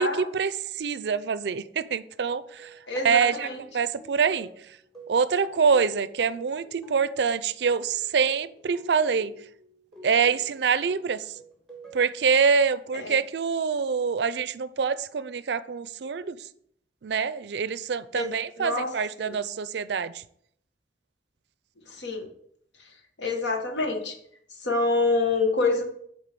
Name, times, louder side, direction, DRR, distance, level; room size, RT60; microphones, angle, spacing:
voice 1, 0.0-2.8 3.0-3.5 3.7-4.5 5.1-9.3 10.0-11.3 11.9-16.4 17.0-20.2, right 6 dB, 65° right, 0.4 m, -25 dB
sound 1, 2.2-12.1, right 1 dB, ahead, 1.7 m, -49 dB
voice 2, 2.9-3.6 12.9-13.2 18.1-18.3 18.6-18.9 19.2-19.4 21.9-22.3 22.8-22.9 23.2-24.1 24.6-25.8, left 3 dB, 85° left, 1.5 m, -26 dB
6.8 x 4.3 x 6.7 m
head